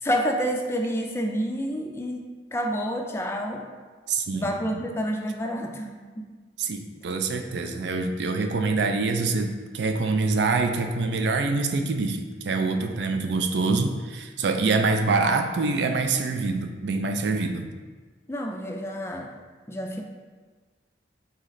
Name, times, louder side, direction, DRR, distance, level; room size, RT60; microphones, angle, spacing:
voice 1, 0.0-2.2 2.5-3.6 4.3-6.3 6.9-7.0 18.3-19.3 19.7-20.0, equal, 15° left, 3 dB, 0.3 m, -29 dB
voice 2, 4.1-4.8 6.6-17.7, right 3 dB, 75° right, 5 dB, 0.4 m, -25 dB
4.1 x 3.1 x 3.9 m, 1.4 s
head